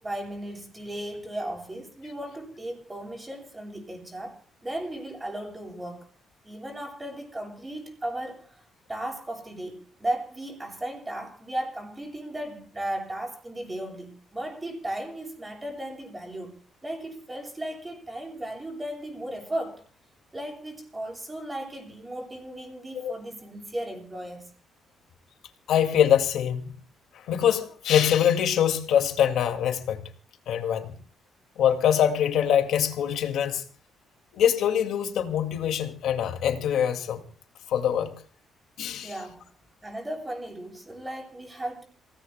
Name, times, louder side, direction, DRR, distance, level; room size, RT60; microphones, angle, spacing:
voice 1, 0.0-6.1 6.4-19.9 20.3-24.5 39.0-39.5 39.8-41.8, right 1 dB, 20° right, 7.6 m, -36 dB
voice 2, 25.7-26.6 27.1-30.0 30.5-31.0 31.6-33.6 34.3-37.2 37.7-38.1 38.8-39.1, left 9 dB, 80° left, 2.0 m, -24 dB
28.0 x 18.0 x 2.2 m
cardioid pair, 90°, 0 cm